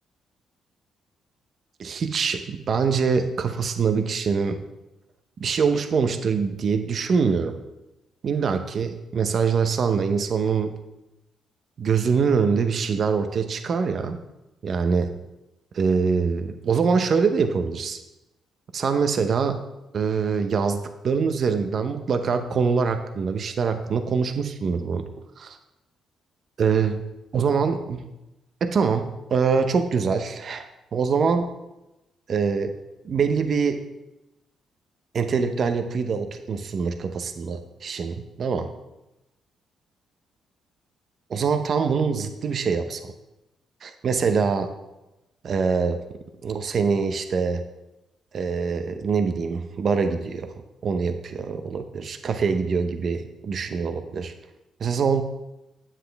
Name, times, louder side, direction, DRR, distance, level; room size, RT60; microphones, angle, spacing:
voice 1, 1.8-4.6 5.4-7.6 8.2-10.7 11.8-14.2 14.6-15.1 15.7-18.0 18.7-19.6 19.9-25.0 25.4-25.6 26.6-27.0 27.3-28.1 28.6-31.5 32.3-32.7 33.0-33.8 35.1-38.7 41.3-43.1 43.8-44.7 45.4-46.0 46.4-47.6 48.3-50.5 50.8-54.3 54.8-55.2, right 5 dB, 50° right, 7 dB, 0.8 m, -24 dB
9.9 x 7.5 x 3.4 m, 0.96 s
cardioid pair, 90°, 0 cm